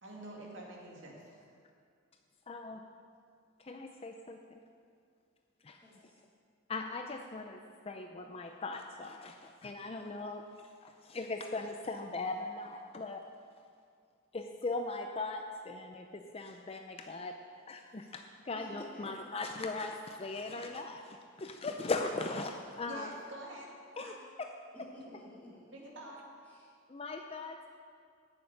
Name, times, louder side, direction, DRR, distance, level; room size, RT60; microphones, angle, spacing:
voice 1, 0.0-1.4 22.9-24.3 25.7-26.3, right 1 dB, 65° right, -2 dB, 2.4 m, -47 dB
voice 2, 2.5-2.8 3.6-4.6 5.6-5.8 6.7-10.5 10.8-13.2 14.3-17.4 17.7-23.1 24.0-24.5 26.9-27.7, left 3 dB, 30° left, 4 dB, 0.5 m, -39 dB
voice 3, 5.7-6.1 18.5-18.7 18.9-19.1 24.7-25.7 26.5-26.7, equal, 10° left, -8 dB, 3.5 m, -53 dB
10.5 x 7.0 x 8.8 m, 2.2 s
head